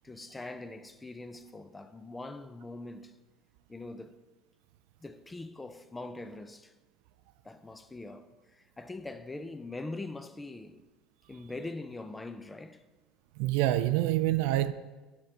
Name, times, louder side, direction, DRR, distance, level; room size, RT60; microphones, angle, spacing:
voice 1, 0.0-3.1 3.7-4.2 5.0-6.7 7.4-10.8 11.3-12.8, left 2 dB, 15° left, 0.4 m, -42 dB
voice 2, 13.4-14.7, right 14 dB, 75° right, 0.3 m, -26 dB
10.0 x 3.8 x 3.3 m
hypercardioid pair, 80°, 0 cm